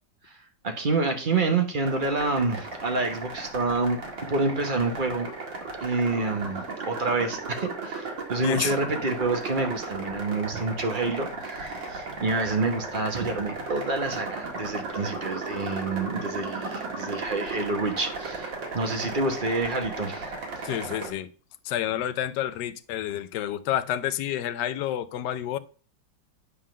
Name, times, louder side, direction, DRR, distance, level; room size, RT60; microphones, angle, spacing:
voice 1, 0.6-4.0 4.3-5.3 5.8-20.3 20.6-20.7, right 3 dB, 30° right, 1.1 m, -28 dB
sound 1, 1.8-21.1, right 3 dB, 70° right, 2.7 m, -35 dB
voice 2, 8.4-8.7 20.6-21.3 21.6-25.6, left 11 dB, 70° left, 1.1 m, -29 dB
9.9 x 3.7 x 6.3 m
omnidirectional pair, 2.1 m